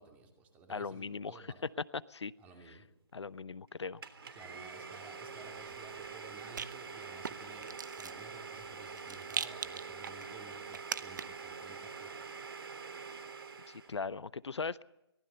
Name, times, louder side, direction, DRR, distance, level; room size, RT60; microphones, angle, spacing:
voice 1, 0.0-1.6 2.4-2.9 4.3-12.2, right 3 dB, 10° right, 3 dB, 2.6 m, -55 dB
voice 2, 0.7-1.4 2.1-2.3 3.1-4.0 13.7-14.8, left 4 dB, 90° left, 18 dB, 0.8 m, -39 dB
Domestic sounds home sounds, 4.0-14.0, right 5 dB, 60° right, 3.4 m, -45 dB
Rattle, 5.4-11.5, right 7 dB, 45° right, 0.9 m, -43 dB
23.5 x 19.0 x 6.9 m, 0.85 s
hypercardioid pair, 165°, 14 cm